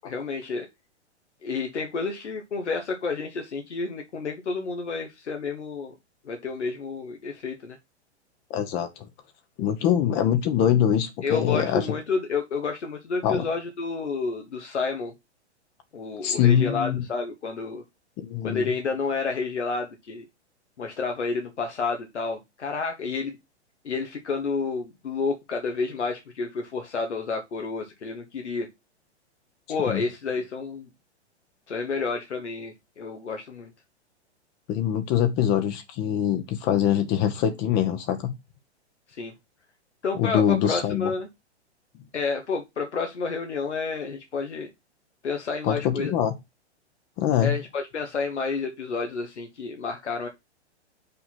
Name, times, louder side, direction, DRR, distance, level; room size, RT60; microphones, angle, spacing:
voice 1, 0.0-0.7 1.4-5.9 6.2-7.8 11.2-15.1 15.9-17.8 18.4-20.2 20.8-23.4 23.8-28.7 29.7-30.9 31.7-33.7 39.2-39.3 40.0-41.3 42.1-44.7 45.2-46.1 47.4-50.3, left 4 dB, 80° left, 1.3 m, -30 dB
voice 2, 8.5-8.9 9.6-11.9 13.2-13.4 16.2-17.0 18.2-18.7 29.9-30.0 34.7-38.3 40.1-41.1 45.6-46.3 47.2-47.6, left 10 dB, 30° left, 0.9 m, -23 dB
5.5 x 4.2 x 5.9 m
figure-of-eight pair, 115°, 34 cm